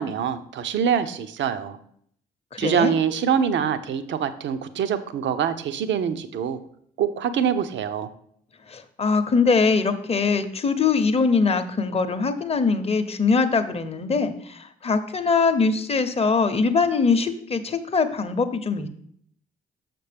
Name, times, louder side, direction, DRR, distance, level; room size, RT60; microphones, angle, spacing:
voice 1, 0.0-1.8 2.6-6.6 7.0-8.1, right 8 dB, 65° right, 10 dB, 0.6 m, -24 dB
voice 2, 2.5-2.9 8.7-18.9, left 4 dB, 30° left, 8 dB, 0.7 m, -22 dB
6.4 x 5.9 x 3.4 m, 0.66 s
hypercardioid pair, 45°, 21 cm